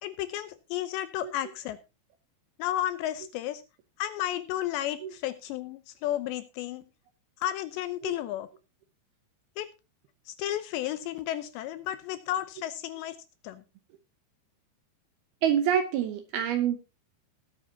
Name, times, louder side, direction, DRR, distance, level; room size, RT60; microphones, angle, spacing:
voice 1, 0.0-1.8 2.6-3.6 4.0-6.8 7.4-8.5 9.6-9.7 10.3-13.2 13.4-13.6, left 13 dB, 80° left, 12 dB, 2.7 m, -33 dB
voice 2, 15.4-16.8, right 9 dB, 75° right, 8 dB, 2.4 m, -26 dB
19.5 x 8.3 x 2.8 m, 0.27 s
omnidirectional pair, 5.5 m